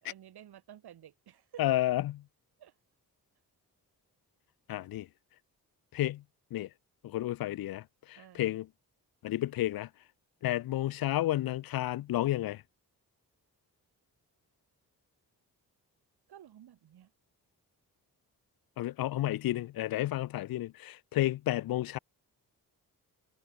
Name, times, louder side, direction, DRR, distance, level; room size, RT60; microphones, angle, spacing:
voice 1, 0.0-1.8 2.6-2.7 8.2-8.5 16.3-17.1, right 11 dB, 75° right, 1.6 m, -52 dB
voice 2, 1.6-2.1 4.7-5.1 5.9-6.2 6.5-6.7 7.0-7.8 8.1-8.7 9.2-9.9 10.4-12.6 18.8-22.0, left 14 dB, 65° left, 0.5 m, -31 dB
cardioid pair, 65°, 38 cm